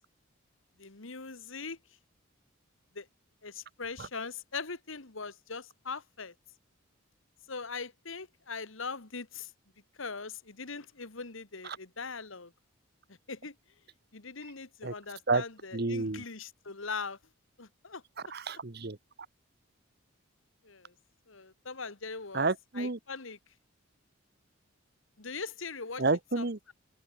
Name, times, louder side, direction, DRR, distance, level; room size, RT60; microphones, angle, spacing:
voice 1, 0.8-1.8 3.0-3.1 3.4-6.3 7.5-9.5 10.0-12.5 13.3-13.5 14.1-17.2 17.6-18.0 20.6-20.9 21.3-22.5 22.8-23.4 25.2-26.0 26.4-26.7, left 4 dB, 70° left, 1.8 m, -41 dB
voice 2, 15.7-16.2 18.3-19.0 22.3-23.0 26.0-26.6, right 3 dB, 50° right, 1.1 m, -30 dB
open air
head